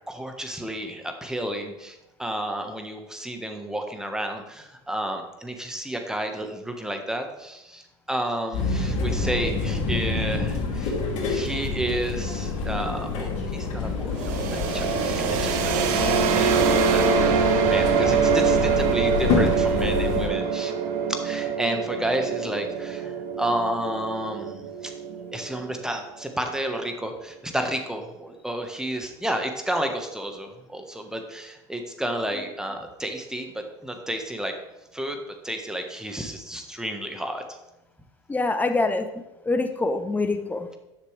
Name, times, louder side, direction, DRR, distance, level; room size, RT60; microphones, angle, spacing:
voice 1, 0.0-11.0 11.2-20.7 21.1-24.9 25.3-34.5 34.9-35.2 35.4-37.6, right 1 dB, 5° right, 1.3 m, -31 dB
sound 1, 8.5-20.3, left 4 dB, 50° left, 2.7 m, -27 dB
sound 2, 14.2-25.8, right 6 dB, 60° right, 1.1 m, -24 dB
voice 2, 38.3-39.1 39.5-40.7, left 3 dB, 10° left, 0.8 m, -24 dB
10.5 x 6.6 x 3.3 m
hypercardioid pair, 95°, 15 cm